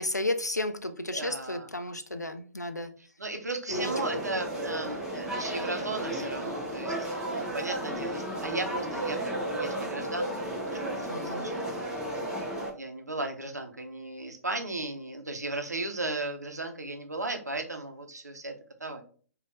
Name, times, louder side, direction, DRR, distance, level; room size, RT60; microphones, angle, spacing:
voice 1, 0.0-2.9 3.7-3.9 4.4-4.5 11.1-11.5, left 1 dB, 90° left, 9 dB, 0.4 m, -33 dB
voice 2, 1.1-1.7 3.2-11.7 12.8-18.5 18.8-19.0, right 2 dB, 80° right, 4 dB, 0.7 m, -36 dB
sound 1, 3.7-12.7, right 1 dB, 10° right, 0.9 m, -33 dB
5.0 x 2.4 x 2.5 m, 0.43 s
figure-of-eight pair, 120°, 9 cm